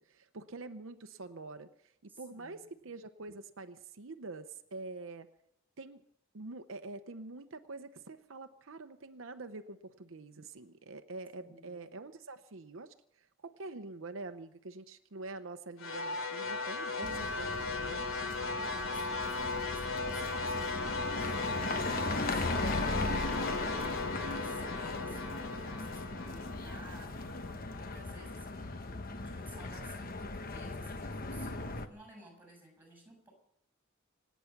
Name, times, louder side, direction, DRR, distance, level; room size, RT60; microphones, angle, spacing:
voice 1, 0.0-5.3 5.8-6.0 6.3-18.0, right 3 dB, 80° right, 8 dB, 0.8 m, -46 dB
voice 2, 2.1-2.6 11.4-11.9 18.6-27.4 27.7-33.3, right 1 dB, 10° right, 2 dB, 6.9 m, -55 dB
sound 1, 15.8-28.0, left 3 dB, 80° left, 2.8 m, -37 dB
sound 2, 17.0-31.9, left 2 dB, 45° left, 1.0 m, -38 dB
26.0 x 9.3 x 6.0 m, 0.75 s
head